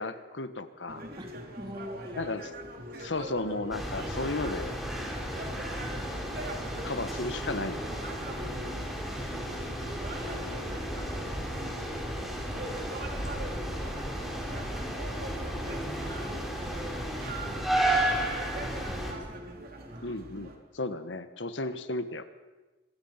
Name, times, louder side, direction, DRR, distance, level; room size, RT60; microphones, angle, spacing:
voice 1, 0.0-1.1 2.2-2.5 3.0-4.7 6.8-7.8 20.0-22.2, left 2 dB, 90° left, 11 dB, 1.5 m, -34 dB
voice 2, 0.9-2.3 3.8-4.3 5.7-6.0 13.5-14.2 14.9-17.4 18.8-20.1, equal, 25° right, 2 dB, 3.5 m, -46 dB
sound 1, 0.9-20.6, right 1 dB, 55° right, 3.3 m, -43 dB
sound 2, 3.7-19.1, right 1 dB, ahead, 4.8 m, -33 dB
25.5 x 23.5 x 5.8 m, 1.2 s
head